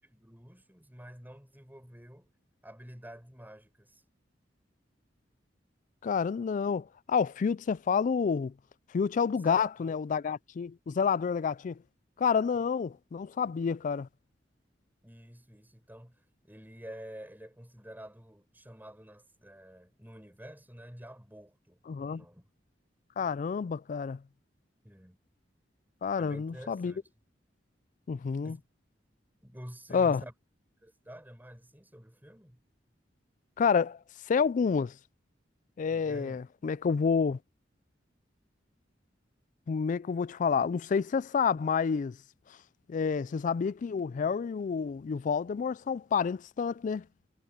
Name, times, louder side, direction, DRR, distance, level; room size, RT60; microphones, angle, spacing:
voice 1, 0.0-2.3 2.6-4.0 9.3-10.0 15.0-22.5 24.8-25.2 26.2-27.1 28.4-28.6 29.4-30.3 30.8-32.6 35.9-36.5, equal, 10° right, 7.2 m, -49 dB
voice 2, 6.0-8.5 8.9-11.8 12.2-14.1 21.9-22.2 23.2-24.2 26.0-26.9 28.1-28.6 29.9-30.2 33.6-34.0 34.3-34.9 35.8-37.4 39.7-42.2 42.9-47.0, left 6 dB, 45° left, 0.3 m, -29 dB
head